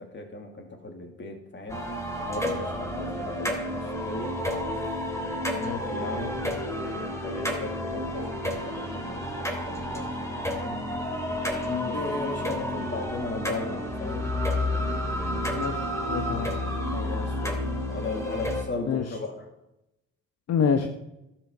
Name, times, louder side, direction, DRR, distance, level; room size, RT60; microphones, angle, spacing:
voice 1, 0.0-1.8 2.3-4.4 5.6-10.8 11.8-14.3 16.9-19.5, left 3 dB, 40° left, 5 dB, 2.8 m, -37 dB
sound 1, 1.7-18.6, left 1 dB, 10° left, 3.1 m, -30 dB
voice 2, 5.5-5.8 11.7-11.9 15.5-16.5 18.9-19.0 20.5-20.9, left 6 dB, 55° left, 7 dB, 1.1 m, -27 dB
12.5 x 9.0 x 6.7 m, 0.90 s
cardioid pair, 90°, 30 cm